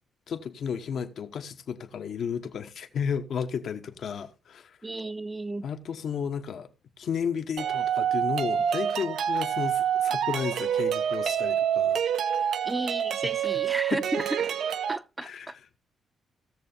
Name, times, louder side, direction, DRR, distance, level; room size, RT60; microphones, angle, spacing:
voice 1, 0.3-4.8 5.6-6.7 7.0-12.0 12.3-12.4 13.2-13.3 13.9-14.0 15.2-15.5, left 7 dB, 70° left, 0.9 m, -33 dB
voice 2, 4.8-5.7 12.7-14.4 14.9-15.5, right 2 dB, 20° right, 0.6 m, -33 dB
sound 1, 7.6-15.0, right 9 dB, 75° right, 0.5 m, -27 dB
16.5 x 6.8 x 2.7 m
cardioid pair, 80°, 0 cm